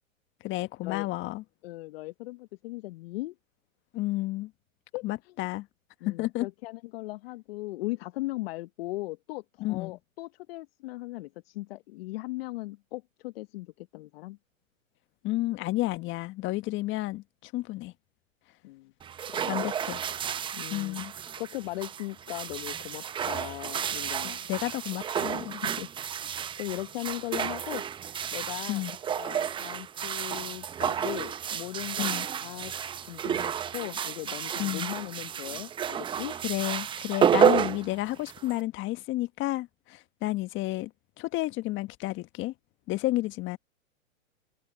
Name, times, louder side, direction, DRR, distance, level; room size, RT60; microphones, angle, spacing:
voice 1, 0.4-1.4 3.9-4.5 5.0-5.7 6.0-6.5 9.6-10.0 15.2-17.9 19.5-20.0 20.7-21.1 24.2-25.6 28.7-29.0 32.0-32.3 34.6-34.9 36.4-42.5 42.9-43.6, left 18 dB, 30° left, 1.5 m, -31 dB
voice 2, 1.6-3.3 4.9-5.0 6.0-14.4 18.6-18.9 19.3-19.7 20.5-21.1 21.4-24.5 25.6-25.9 26.2-26.3 26.6-27.8 28.3-28.9 29.2-32.7 33.0-36.4, left 20 dB, 45° left, 1.1 m, -38 dB
sound 1, 19.0-38.6, right 8 dB, 10° right, 0.7 m, -31 dB
hypercardioid pair, 125°, 41 cm